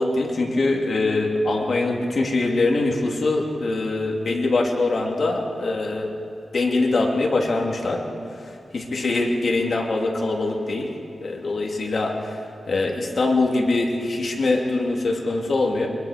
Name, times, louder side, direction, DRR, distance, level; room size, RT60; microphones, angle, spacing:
voice 1, 0.0-6.1 6.5-8.0 8.7-10.9 11.2-12.1 12.7-15.9, left 2 dB, 50° left, -1 dB, 2.7 m, -23 dB
25.5 x 21.0 x 5.1 m, 2.6 s
wide cardioid pair, 175°, 0 cm